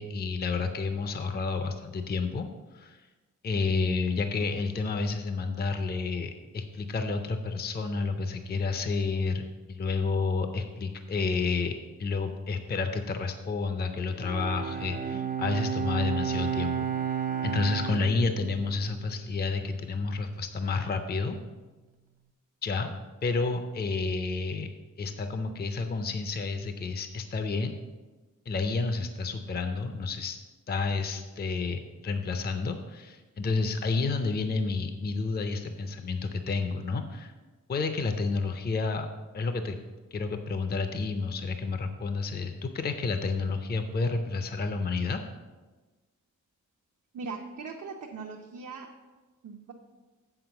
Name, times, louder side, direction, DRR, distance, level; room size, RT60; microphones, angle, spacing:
voice 1, 0.0-2.5 2.7-3.1 3.4-11.7 12.0-16.9 17.4-21.4 22.6-22.9 23.2-24.7 25.0-27.7 28.5-30.4 30.7-37.3 37.7-39.1 39.3-39.8 40.1-45.2, left 4 dB, 30° left, 7 dB, 0.5 m, -30 dB
Bowed string instrument, 14.2-19.7, right 7 dB, 30° right, 0.4 m, -32 dB
voice 2, 47.1-48.9 49.4-49.7, right 4 dB, 65° right, 1 dB, 0.7 m, -39 dB
7.8 x 4.6 x 6.9 m, 1.2 s
wide cardioid pair, 165°, 32 cm